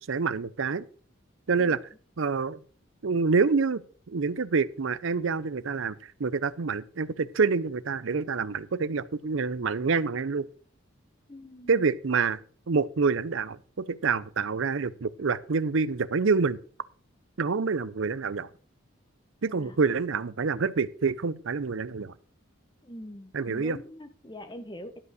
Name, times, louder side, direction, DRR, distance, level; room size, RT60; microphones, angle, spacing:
voice 1, 0.1-0.9 1.5-1.8 2.2-2.6 3.0-5.9 6.2-10.5 11.7-12.4 12.7-16.6 17.4-18.5 19.4-22.1 23.3-23.8, right 4 dB, 70° right, 0.6 m, -27 dB
voice 2, 11.3-11.8 19.4-19.8 22.8-25.0, left 1 dB, 20° left, 1.1 m, -43 dB
12.0 x 5.4 x 6.3 m
head